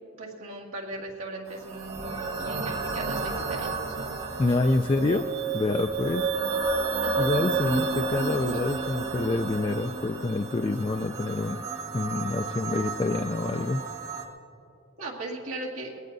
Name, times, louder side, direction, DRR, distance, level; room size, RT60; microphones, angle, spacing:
voice 1, 0.2-4.0 7.0-7.3 8.5-8.7 15.0-15.9, right 2 dB, 85° right, -3 dB, 2.1 m, -38 dB
sound 1, 1.5-14.2, right 4 dB, 50° right, 1.5 m, -31 dB
voice 2, 4.4-5.3 5.5-6.3 7.2-11.6 11.9-13.8, left 2 dB, 25° left, 6 dB, 0.3 m, -27 dB
21.0 x 18.0 x 2.7 m, 2.7 s
head